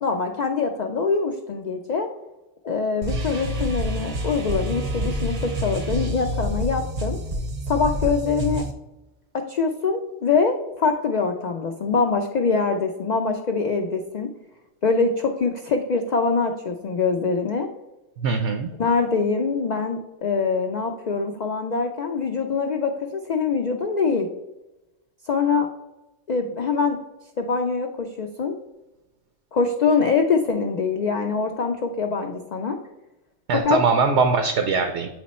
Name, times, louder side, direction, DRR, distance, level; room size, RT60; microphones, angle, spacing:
voice 1, 0.0-2.1 2.6-7.2 7.7-8.6 9.3-14.3 14.8-17.7 18.8-24.3 25.3-25.7 26.3-27.0 27.4-28.6 29.5-32.8 33.6-33.8, left 4 dB, 55° left, 4 dB, 0.5 m, -24 dB
sound 1, 3.0-8.7, equal, 40° right, 0.7 m, -28 dB
voice 2, 18.2-18.7 33.5-35.1, right 4 dB, 75° right, 6 dB, 0.9 m, -21 dB
7.9 x 3.1 x 4.2 m, 0.98 s
omnidirectional pair, 1.2 m